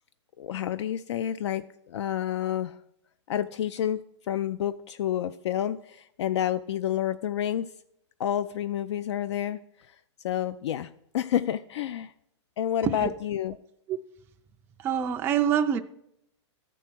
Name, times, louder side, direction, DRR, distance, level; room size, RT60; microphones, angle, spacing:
voice 1, 0.4-2.8 3.3-4.0 4.3-7.7 8.2-10.0 10.2-12.1 12.6-13.5, left 10 dB, 65° left, 13 dB, 0.4 m, -29 dB
voice 2, 14.8-15.8, right 8 dB, 15° right, 6 dB, 0.3 m, -25 dB
13.0 x 4.6 x 6.0 m, 0.77 s
hypercardioid pair, 150°, 15 cm